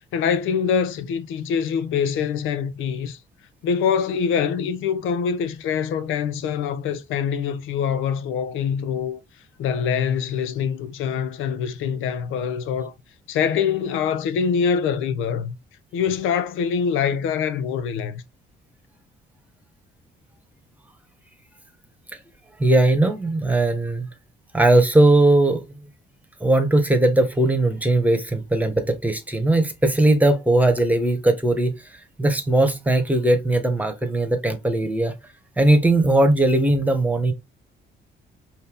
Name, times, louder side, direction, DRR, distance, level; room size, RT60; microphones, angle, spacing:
voice 1, 0.1-3.2 3.6-9.2 9.6-12.9 13.3-15.5 15.9-18.2, left 7 dB, 90° left, 0.6 m, -24 dB
voice 2, 22.6-24.1 24.5-25.6 26.4-31.7 32.2-35.1 35.6-37.3, right 2 dB, 10° right, 1.2 m, -19 dB
5.4 x 2.8 x 3.5 m
cardioid pair, 90°, 20 cm